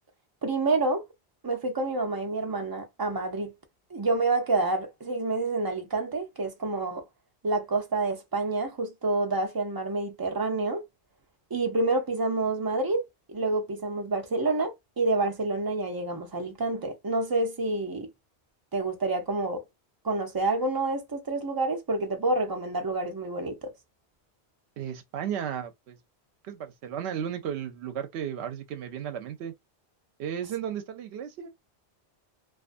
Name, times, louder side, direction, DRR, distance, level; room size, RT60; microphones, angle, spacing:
voice 1, 0.4-1.0 1.4-3.5 3.9-7.1 7.4-10.8 11.5-13.0 13.3-18.1 18.7-19.6 20.0-23.7, right 2 dB, 30° right, 0.4 m, -28 dB
voice 2, 24.8-26.0 26.4-29.5 30.2-31.5, right 9 dB, 75° right, 0.8 m, -34 dB
2.4 x 2.4 x 2.4 m
omnidirectional pair, 1.1 m